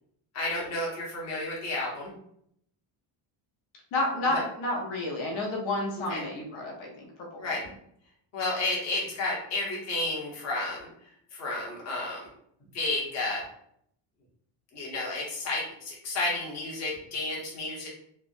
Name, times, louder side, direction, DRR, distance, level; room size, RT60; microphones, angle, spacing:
voice 1, 0.3-2.1 4.3-4.4 6.1-6.2 7.4-7.6 8.3-12.3 12.7-13.4 14.7-17.9, left 2 dB, 35° left, -4 dB, 0.9 m, -32 dB
voice 2, 3.9-7.1 7.3-7.5, left 2 dB, 75° left, -2 dB, 0.9 m, -30 dB
3.2 x 2.0 x 2.5 m, 0.69 s
cardioid pair, 155°, 48 cm